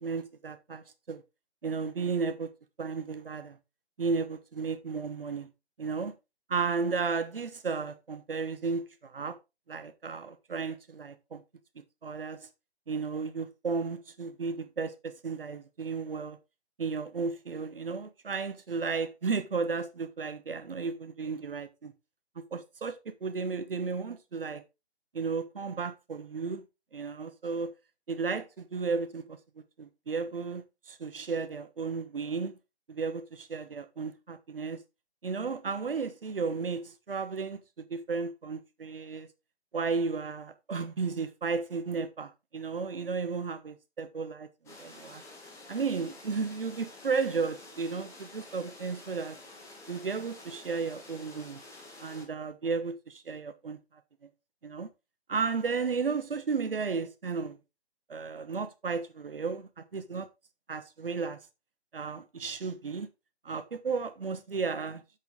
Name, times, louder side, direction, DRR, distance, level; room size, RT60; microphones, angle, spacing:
voice 1, 0.0-1.2 1.6-2.5 2.8-3.6 4.0-5.5 5.8-6.1 6.5-9.4 9.7-11.4 11.8-12.5 12.9-16.4 16.8-21.9 22.5-24.6 25.1-26.6 26.9-27.7 28.1-29.4 29.8-32.6 32.9-34.8 35.2-39.3 39.7-45.2 45.7-49.4 49.9-51.6 52.0-53.8 54.6-54.9 55.3-57.6 58.1-60.3 60.7-61.4 61.9-63.1 63.4-65.0, right 5 dB, 55° right, 1.2 m, -34 dB
sound 1, 44.6-52.2, left 2 dB, 10° left, 2.2 m, -50 dB
8.1 x 6.5 x 3.6 m
figure-of-eight pair, 145°, 34 cm